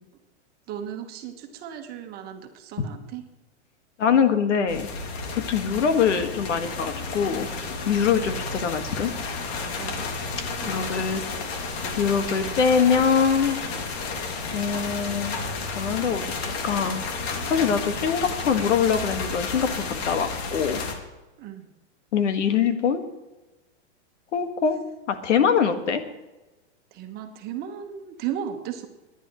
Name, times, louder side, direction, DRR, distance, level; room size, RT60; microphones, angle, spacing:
voice 1, 0.7-3.2 8.3-8.7 9.8-10.1 10.6-11.4 21.4-21.7 26.9-28.9, right 9 dB, 25° right, 5 dB, 1.3 m, -36 dB
voice 2, 4.0-4.9 5.3-7.5 7.9-9.1 10.7-11.2 12.0-13.6 14.5-15.4 15.6-17.1 17.4-20.8 22.1-23.0 24.3-24.8 25.1-26.0, left 6 dB, 90° left, 8 dB, 1.7 m, -23 dB
sound 1, 4.7-20.9, left 4 dB, 60° left, 2.5 m, -32 dB
25.5 x 10.5 x 3.1 m, 1.1 s
supercardioid pair, 155°, 35 cm